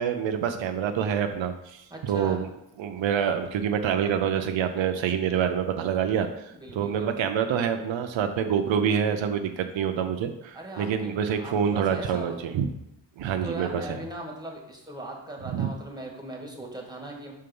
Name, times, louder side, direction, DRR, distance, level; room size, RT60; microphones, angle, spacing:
voice 1, 0.0-2.5 2.8-6.3 6.7-12.7 13.2-14.0 15.5-15.7, right 8 dB, 85° right, 7 dB, 0.6 m, -26 dB
voice 2, 1.9-2.4 6.6-7.1 10.5-12.4 13.4-17.3, right 1 dB, 10° right, 0 dB, 1.6 m, -39 dB
5.6 x 3.8 x 5.3 m, 0.83 s
cardioid pair, 75°, 44 cm